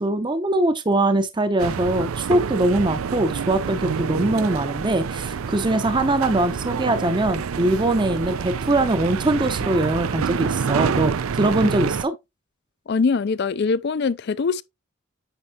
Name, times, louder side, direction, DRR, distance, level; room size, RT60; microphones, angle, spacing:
voice 1, 0.0-12.1, right 2 dB, 20° right, 0.6 m, -22 dB
sound 1, 1.6-12.0, right 6 dB, 80° right, 0.5 m, -27 dB
voice 2, 12.9-14.6, left 4 dB, 50° left, 0.4 m, -22 dB
8.9 x 5.3 x 2.8 m
head